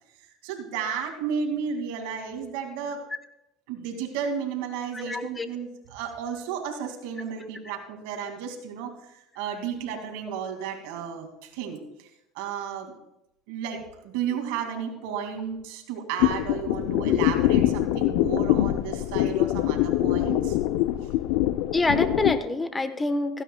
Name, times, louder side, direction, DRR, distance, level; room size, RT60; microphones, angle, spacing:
voice 1, 0.4-3.0 3.7-12.1 12.3-12.9 13.5-20.6, right 7 dB, 80° right, 4 dB, 2.3 m, -33 dB
voice 2, 4.9-5.5 17.1-17.2 21.7-23.4, left 2 dB, 15° left, 10 dB, 1.0 m, -26 dB
sound 1, 16.2-22.4, left 14 dB, 75° left, 0.6 m, -24 dB
16.5 x 15.5 x 2.3 m, 0.84 s
supercardioid pair, 115°, 0 cm